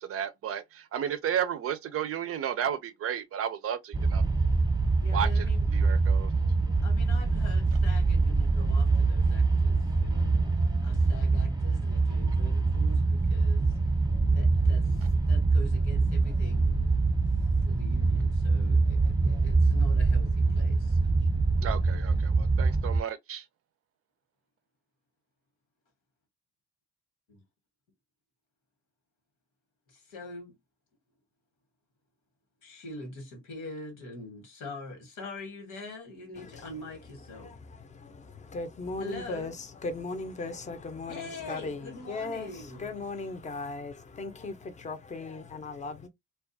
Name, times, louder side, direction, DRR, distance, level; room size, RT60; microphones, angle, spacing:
voice 1, 0.0-4.2 5.1-5.4 5.7-6.3 21.6-23.4, right 9 dB, 50° right, 0.4 m, -33 dB
sound 1, 3.9-23.0, right 3 dB, 15° right, 0.7 m, -24 dB
voice 2, 4.9-5.7 6.8-10.5 10.8-13.7 14.3-16.7 17.6-21.0 29.9-30.5 32.6-37.5 39.0-39.6 41.1-42.9, left 2 dB, 80° left, 1.2 m, -44 dB
voice 3, 36.4-36.7 37.3-46.1, left 3 dB, 25° left, 0.6 m, -38 dB
2.3 x 2.2 x 2.6 m
cardioid pair, 90°, 30 cm